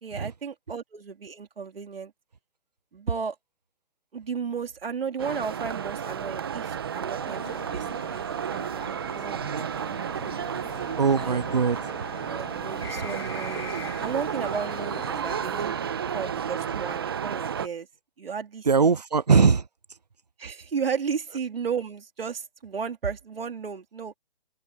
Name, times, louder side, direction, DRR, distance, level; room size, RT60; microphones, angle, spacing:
voice 1, 0.0-2.1 2.9-3.4 4.1-7.4 7.7-9.6 11.2-11.6 12.3-13.7 14.0-15.8 16.1-17.9 18.2-19.0 20.4-24.1, right 6 dB, 60° right, 3.8 m, -34 dB
sound 1, 5.2-17.7, right 8 dB, 25° right, 1.0 m, -32 dB
sound 2, 7.2-17.0, left 5 dB, 65° left, 3.8 m, -43 dB
voice 2, 11.0-12.1 18.7-19.7, right 5 dB, 40° right, 0.4 m, -21 dB
hypercardioid pair, 175°, 32 cm